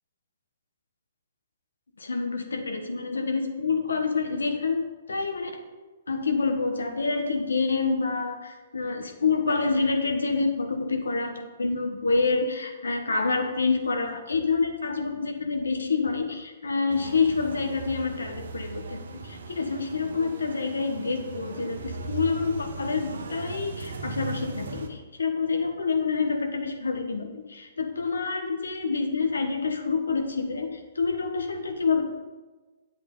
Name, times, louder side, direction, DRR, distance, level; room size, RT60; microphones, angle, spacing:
voice 1, 2.0-5.5 6.1-32.0, left 4 dB, 85° left, 6 dB, 1.1 m, -27 dB
sound 1, 16.9-24.9, right 4 dB, 75° right, 1.1 m, -38 dB
8.4 x 7.7 x 3.8 m, 1.2 s
hypercardioid pair, 130°, 0 cm